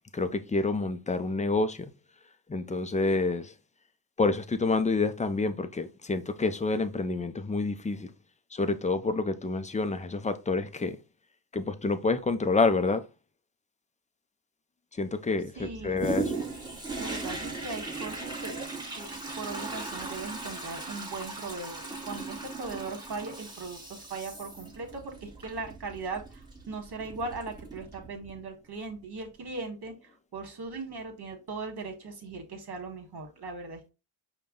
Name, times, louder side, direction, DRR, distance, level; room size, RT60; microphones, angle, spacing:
voice 1, 0.1-1.9 2.5-3.5 4.2-8.1 8.5-11.0 11.5-13.0 15.0-16.3, left 3 dB, 15° left, 0.5 m, -28 dB
voice 2, 15.6-16.4 17.0-18.6 19.0-26.4 26.7-29.9 30.3-33.9, right 3 dB, 55° right, 1.6 m, -39 dB
Toilet flush, 16.0-28.4 28.9-29.0, right 3 dB, 10° right, 1.3 m, -38 dB
5.2 x 2.3 x 3.7 m
cardioid pair, 70°, 49 cm